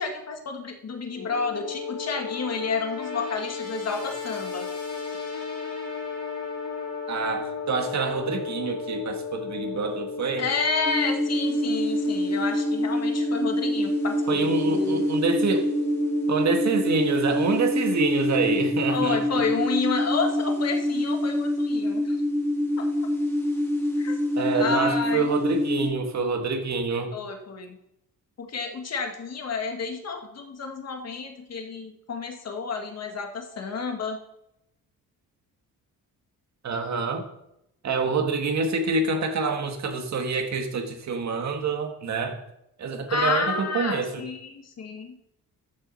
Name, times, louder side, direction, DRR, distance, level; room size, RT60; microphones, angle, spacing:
voice 1, 0.0-4.7 10.4-15.0 18.9-22.2 22.8-22.9 24.0-24.2 24.5-25.3 27.1-27.8 28.4-34.2 43.1-45.1, left 4 dB, 45° left, 3 dB, 1.8 m, -30 dB
sound 1, 1.1-18.8, left 5 dB, 65° left, 4.6 m, -35 dB
voice 2, 7.1-10.5 14.3-15.7 16.3-19.2 24.4-27.1 36.6-37.3 37.8-42.4 42.8-44.2, right 4 dB, 50° right, 4 dB, 1.8 m, -26 dB
sound 2, 10.9-25.9, equal, 10° left, 2.4 m, -26 dB
13.5 x 6.4 x 4.2 m, 0.81 s
cardioid pair, 115°, 35 cm